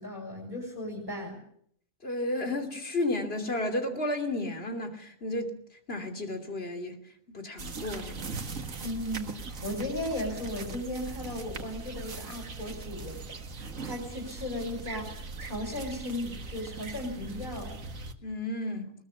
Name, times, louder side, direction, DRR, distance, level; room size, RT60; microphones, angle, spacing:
voice 1, 0.0-1.4 8.8-13.2 13.6-17.8, left 1 dB, 30° right, 4.9 m, -36 dB
voice 2, 2.0-5.6 5.9-7.0 7.3-8.3 18.2-18.9, left 2 dB, 40° left, 3.2 m, -32 dB
sound 1, 7.6-18.1, right 4 dB, 60° right, 2.1 m, -40 dB
20.5 x 20.0 x 7.0 m
omnidirectional pair, 1.6 m